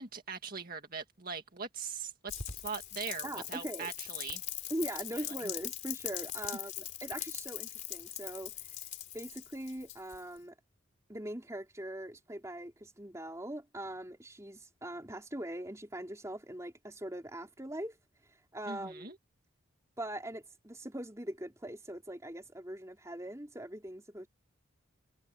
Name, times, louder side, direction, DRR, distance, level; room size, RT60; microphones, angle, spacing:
voice 1, 0.0-4.4 5.2-5.3 18.7-19.2, right 5 dB, 45° right, 2.0 m, -41 dB
Rain, 2.3-10.4, left 11 dB, 35° left, 3.9 m, -41 dB
voice 2, 3.2-3.9 4.7-8.5 9.1-10.5 11.1-18.0 18.5-19.1 20.0-24.3, right 1 dB, 15° right, 3.5 m, -41 dB
head